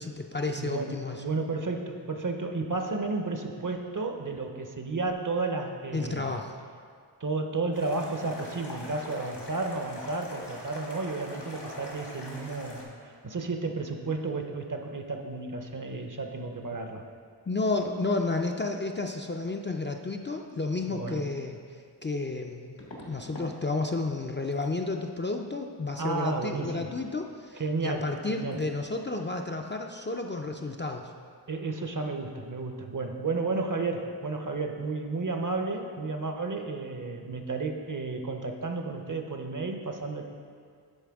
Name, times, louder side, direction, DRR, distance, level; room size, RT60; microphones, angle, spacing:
voice 1, 0.0-1.2 5.9-6.6 17.5-21.6 22.0-31.1, left 3 dB, 30° left, 3 dB, 0.4 m, -31 dB
voice 2, 0.6-6.3 7.2-17.0 20.8-21.3 26.0-26.9 27.5-28.6 31.5-40.2, right 3 dB, 50° right, 4 dB, 0.6 m, -32 dB
sound 1, 7.7-12.8, left 1 dB, 70° left, 1.4 m, -42 dB
sound 2, 22.8-23.6 23.9-24.2 24.5-24.7 27.6-27.7 28.0-28.2 28.5-28.6, left 1 dB, 85° left, 1.4 m, -46 dB
11.0 x 4.1 x 3.5 m, 2.1 s
wide cardioid pair, 40°, 42 cm